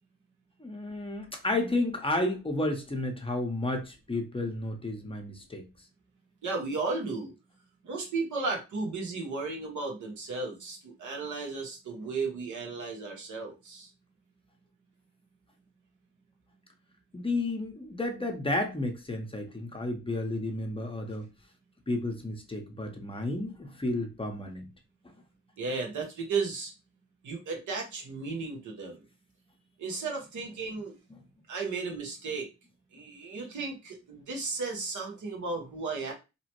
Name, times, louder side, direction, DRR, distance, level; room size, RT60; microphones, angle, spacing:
voice 1, 0.6-5.7 17.1-21.3 21.9-24.7, left 2 dB, 20° left, 0.7 m, -32 dB
voice 2, 6.4-7.3 7.8-13.9 25.6-26.7 27.2-29.0 29.8-30.9 31.5-32.5 32.9-36.1, right 4 dB, 75° right, 1.1 m, -34 dB
2.9 x 2.0 x 2.9 m
cardioid pair, 70°, 30 cm